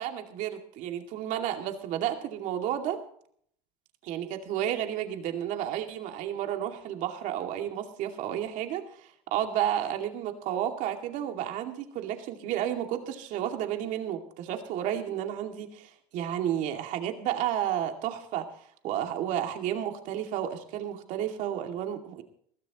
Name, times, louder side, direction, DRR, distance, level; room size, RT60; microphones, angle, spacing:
voice 1, 0.0-3.0 4.0-18.5 18.8-22.2, right 10 dB, 55° right, 5 dB, 2.4 m, -32 dB
21.5 x 15.0 x 3.0 m, 0.62 s
supercardioid pair, 130°, 16 cm